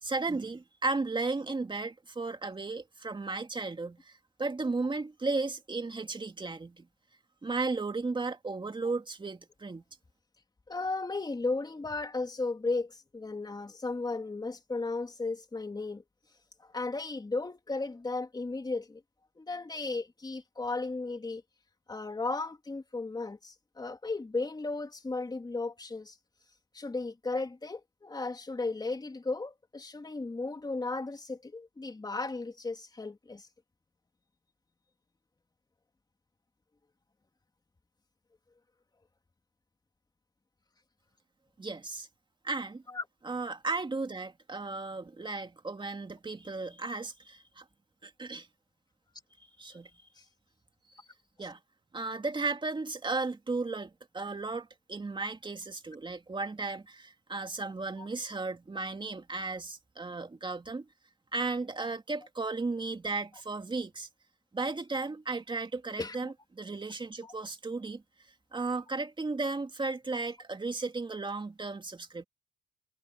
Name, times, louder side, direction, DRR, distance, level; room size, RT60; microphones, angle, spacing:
voice 1, 0.0-6.9 7.4-9.8 41.6-42.1 42.4-42.8 43.2-47.6 48.0-48.5 49.6-49.9 50.9-51.1 51.4-51.6 51.9-60.8 61.3-64.1 64.5-68.0 68.5-72.2, right 3 dB, 25° right, 2.5 m, -35 dB
voice 2, 10.7-16.0 16.6-19.0 19.4-21.4 21.9-26.2 26.7-33.5 42.9-43.0 50.2-50.3 51.4-51.5 58.0-58.1 66.0-66.3 67.2-67.3, left 3 dB, 20° left, 2.7 m, -35 dB
cardioid pair, 90°, 20 cm